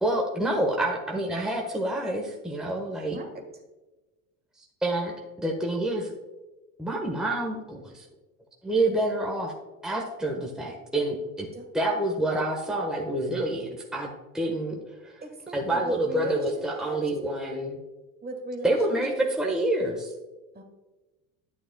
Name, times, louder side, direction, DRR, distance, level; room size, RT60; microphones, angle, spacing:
voice 1, 0.0-3.2 4.8-6.1 6.8-8.0 8.6-9.5 9.8-11.5 11.7-15.1 15.5-17.8 18.6-20.1, right 1 dB, ahead, 0 dB, 1.2 m, -28 dB
voice 2, 2.8-3.4 11.5-11.7 15.2-17.0 18.2-19.0 20.5-20.6, right 2 dB, 25° right, 4 dB, 1.5 m, -37 dB
9.9 x 9.1 x 2.2 m, 1.1 s
supercardioid pair, 90°, 41 cm